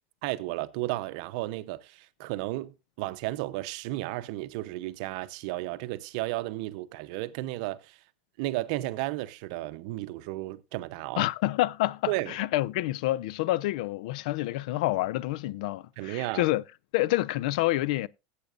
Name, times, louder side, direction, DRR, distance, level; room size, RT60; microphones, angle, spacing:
voice 1, 0.2-8.0 8.4-11.2 12.1-12.3 16.0-16.5, right 18 dB, 65° right, 0.7 m, -33 dB
voice 2, 11.2-16.6 16.9-18.1, left 17 dB, 75° left, 0.4 m, -28 dB
17.0 x 8.3 x 2.5 m
supercardioid pair, 150°, 4 cm